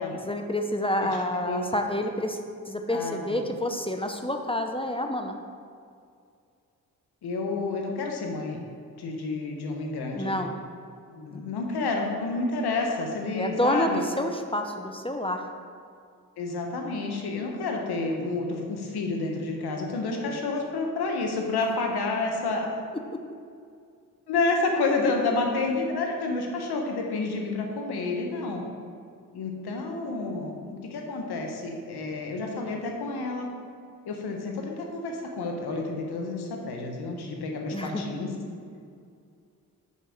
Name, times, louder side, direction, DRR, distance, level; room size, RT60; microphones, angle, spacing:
voice 1, 0.3-2.4 2.7-5.4 10.1-10.5 11.3-11.4 13.4-15.5 37.7-38.0, left 1 dB, 15° left, 4 dB, 0.7 m, -28 dB
voice 2, 1.0-1.7 2.9-3.4 7.2-8.6 9.0-10.5 11.1-14.0 16.4-22.7 24.3-28.6 29.3-33.5 34.0-38.3, left 3 dB, 80° left, 1 dB, 1.2 m, -29 dB
5.6 x 5.5 x 6.4 m, 2.3 s
supercardioid pair, 45°, 38 cm